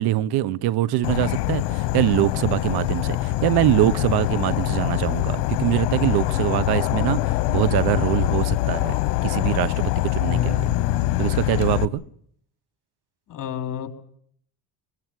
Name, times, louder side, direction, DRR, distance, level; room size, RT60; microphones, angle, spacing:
voice 1, 0.0-9.0 9.2-10.6 11.2-12.0, right 14 dB, 75° right, 1.2 m, -23 dB
Insect / Frog, 1.0-11.9, left 17 dB, 90° left, 1.1 m, -24 dB
voice 2, 10.2-11.2 13.3-13.9, left 9 dB, 55° left, 4.4 m, -29 dB
23.0 x 21.5 x 8.0 m
supercardioid pair, 90°, 39 cm